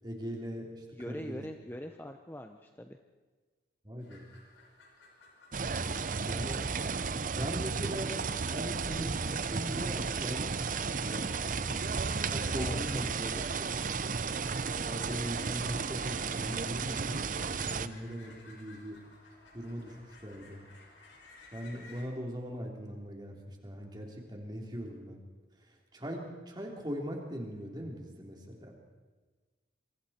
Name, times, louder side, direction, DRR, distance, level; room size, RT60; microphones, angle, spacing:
voice 1, 0.0-1.4 3.8-4.3 6.3-6.7 7.3-8.2 8.5-10.7 11.0-11.3 11.7-11.9 12.3-13.1 13.6-13.7 14.8-19.0 19.5-20.6 21.5-25.2 25.9-28.7, equal, 20° right, 0 dB, 3.4 m, -40 dB
voice 2, 0.9-3.0 12.5-13.5, equal, 10° left, 5 dB, 0.7 m, -43 dB
sound 1, 4.0-22.1, left 2 dB, 85° left, 5.2 m, -58 dB
sound 2, 5.5-17.9, right 5 dB, 45° right, 0.7 m, -33 dB
27.5 x 24.0 x 4.4 m, 1.3 s
head